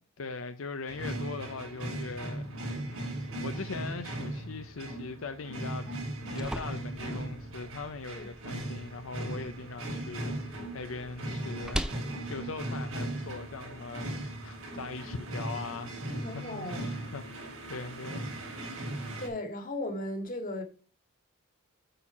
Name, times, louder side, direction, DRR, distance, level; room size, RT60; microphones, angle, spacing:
voice 1, 0.2-2.5 2.8-11.9 12.3-18.3, left 4 dB, 75° left, 0.6 m, -41 dB
sound 1, 0.9-19.3, right 1 dB, 90° right, 3.7 m, -38 dB
sound 2, 5.9-13.9, equal, 5° right, 0.5 m, -42 dB
voice 2, 16.2-16.8 19.2-20.6, left 1 dB, 40° left, 1.9 m, -36 dB
8.8 x 4.4 x 5.8 m
head